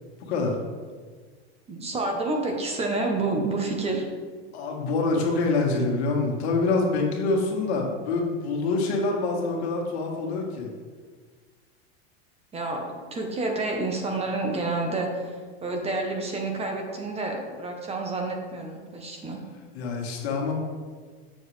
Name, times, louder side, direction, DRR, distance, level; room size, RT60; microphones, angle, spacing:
voice 1, 1.7-4.0 12.5-15.4 15.6-19.4, right 2 dB, 20° right, 2 dB, 0.9 m, -29 dB
voice 2, 4.5-10.7 19.7-20.5, left 3 dB, 80° left, 0 dB, 1.7 m, -26 dB
7.1 x 6.5 x 3.3 m, 1.5 s
supercardioid pair, 140°, 32 cm